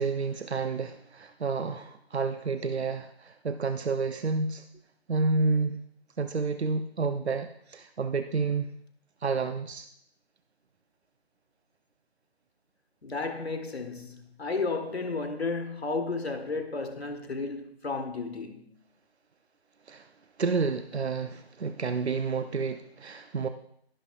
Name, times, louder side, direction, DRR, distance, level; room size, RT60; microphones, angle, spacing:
voice 1, 0.0-4.6 5.1-5.8 6.2-8.7 9.2-9.9 19.9-20.0 20.4-23.5, right 4 dB, 80° right, 0.7 m, -30 dB
voice 2, 13.0-18.7, left 3 dB, 70° left, 1.5 m, -33 dB
12.5 x 11.0 x 2.4 m
figure-of-eight pair, 170°, 32 cm